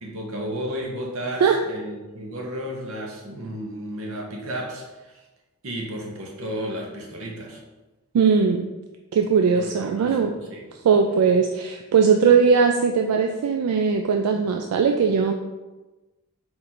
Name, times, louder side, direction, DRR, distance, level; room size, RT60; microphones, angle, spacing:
voice 1, 0.0-5.2 5.6-7.6 9.5-10.7, equal, 70° right, 0 dB, 0.8 m, -33 dB
voice 2, 8.1-8.7 9.1-10.3 10.8-15.3, right 6 dB, 90° right, 4 dB, 0.3 m, -19 dB
4.2 x 2.5 x 4.2 m, 1.1 s
head